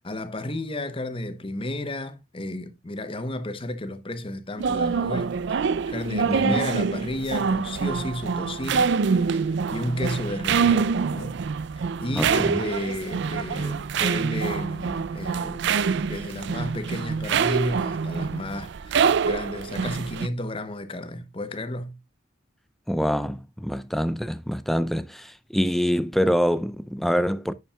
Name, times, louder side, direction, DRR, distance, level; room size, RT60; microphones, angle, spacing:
voice 1, 0.0-9.0 9.7-11.5 12.0-15.7 16.1-22.0, left 1 dB, 30° left, 0.8 m, -32 dB
sound 1, 4.6-20.3, right 5 dB, 60° right, 0.4 m, -25 dB
voice 2, 6.2-6.7 12.2-12.6 22.9-27.5, equal, ahead, 0.4 m, -25 dB
11.0 x 7.3 x 2.3 m
head